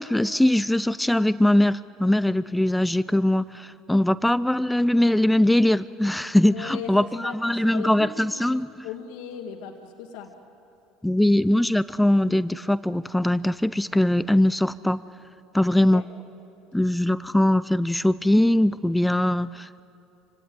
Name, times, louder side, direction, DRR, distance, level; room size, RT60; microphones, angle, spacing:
voice 1, 0.0-8.7 11.0-15.0 15.5-16.1 16.7-19.8, left 1 dB, 5° left, 16 dB, 0.5 m, -21 dB
voice 2, 6.5-8.5 8.8-10.3 15.7-16.1, left 7 dB, 75° left, 2 dB, 2.0 m, -38 dB
26.5 x 18.0 x 9.1 m, 2.7 s
hypercardioid pair, 80°, 0 cm